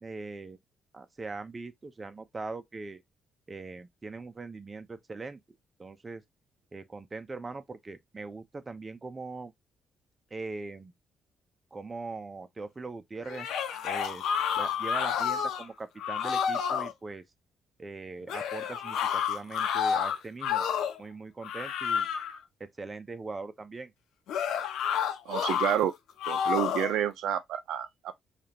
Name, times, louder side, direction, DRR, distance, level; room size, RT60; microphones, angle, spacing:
voice 1, 0.0-0.6 0.9-3.0 3.5-5.4 5.8-6.2 6.7-9.5 10.3-10.9 11.7-13.5 13.8-14.2 14.5-17.2 17.8-22.1 22.6-23.9, right 3 dB, 25° right, 0.7 m, -41 dB
sound 1, 13.2-15.7 16.0-16.9 18.3-21.0 21.4-22.4 24.3-25.8 26.2-27.0, left 8 dB, 80° left, 0.8 m, -30 dB
voice 2, 25.3-25.9 26.3-28.1, right 10 dB, 85° right, 0.5 m, -29 dB
4.9 x 2.5 x 2.8 m
cardioid pair, 90°, 0 cm